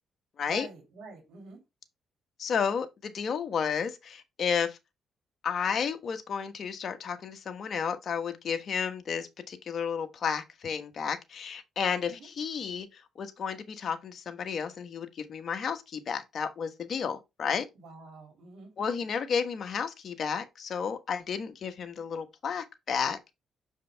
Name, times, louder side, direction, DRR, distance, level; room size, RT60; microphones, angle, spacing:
voice 1, 0.4-1.6 12.0-12.3 17.7-18.7, right 3 dB, 85° right, 2.7 m, -46 dB
voice 2, 2.4-4.8 5.4-17.7 18.8-23.2, left 6 dB, 55° left, 1.2 m, -32 dB
6.8 x 5.0 x 3.4 m
cardioid pair, 90°, 0 cm